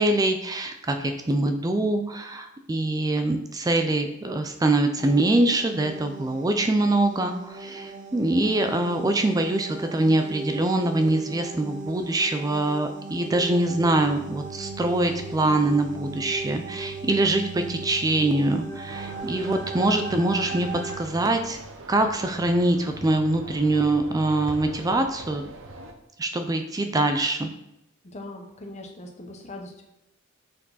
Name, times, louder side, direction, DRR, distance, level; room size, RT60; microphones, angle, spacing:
voice 1, 0.0-20.7 21.0-21.6 21.9-25.4 26.2-27.5, right 2 dB, 15° right, 6 dB, 0.4 m, -24 dB
sound 1, 5.0-21.0, right 3 dB, 40° right, 1.0 m, -37 dB
sound 2, 18.9-25.9, right 2 dB, 65° right, 0.8 m, -42 dB
voice 2, 28.0-29.8, left 2 dB, 35° left, 2 dB, 1.0 m, -40 dB
6.1 x 4.6 x 4.1 m, 0.86 s
head